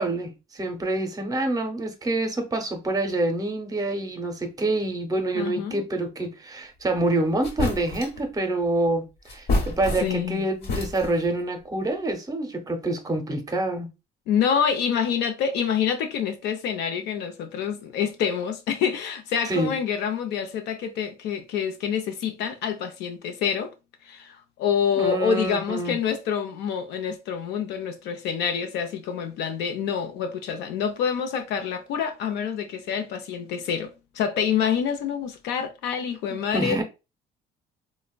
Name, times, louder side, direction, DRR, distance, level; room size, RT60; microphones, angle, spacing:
voice 1, 0.0-13.9 19.4-19.7 25.0-26.0 36.3-36.8, right 2 dB, 20° right, 0.7 m, -27 dB
voice 2, 5.3-5.8 10.0-10.5 14.3-23.7 24.0-36.8, left 7 dB, 85° left, 0.6 m, -27 dB
sound 1, 7.0-7.1 7.4-8.2 9.3-10.3 10.6-11.3, left 2 dB, 70° left, 1.0 m, -28 dB
3.3 x 2.1 x 2.3 m
cardioid pair, 110°, 17 cm